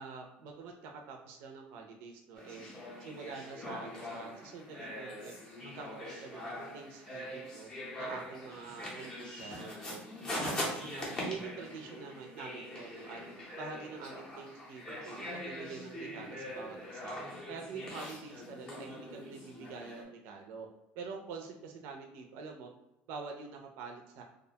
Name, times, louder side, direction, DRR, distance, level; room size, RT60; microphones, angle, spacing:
voice 1, 0.0-2.7 3.0-5.3 5.6-7.7 8.0-10.0 10.3-13.2 13.6-17.2 17.5-20.7 20.9-22.7 23.1-24.2, right 5 dB, 65° right, 2 dB, 0.4 m, -46 dB
sound 1, 2.4-20.0, left 1 dB, 20° left, 0.6 m, -42 dB
2.3 x 2.1 x 2.7 m, 0.89 s
cardioid pair, 175°, 4 cm